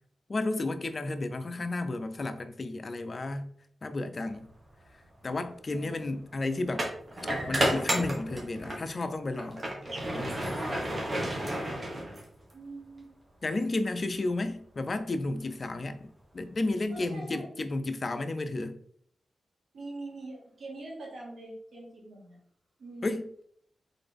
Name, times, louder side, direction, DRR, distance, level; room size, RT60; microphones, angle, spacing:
voice 1, 0.3-3.5 3.8-4.5 5.2-6.9 7.5-9.6 13.4-18.8 23.0-23.4, left 2 dB, 45° left, 0.5 m, -32 dB
sound 1, 4.6-4.8 6.7-8.9 9.3-12.5, right 1 dB, 35° right, 1.4 m, -31 dB
voice 2, 11.2-11.6 12.5-13.1 16.9-17.5 19.7-22.4 22.8-23.2, right 2 dB, 75° right, 1.8 m, -43 dB
3.9 x 3.8 x 3.4 m
cardioid pair, 60°, 0 cm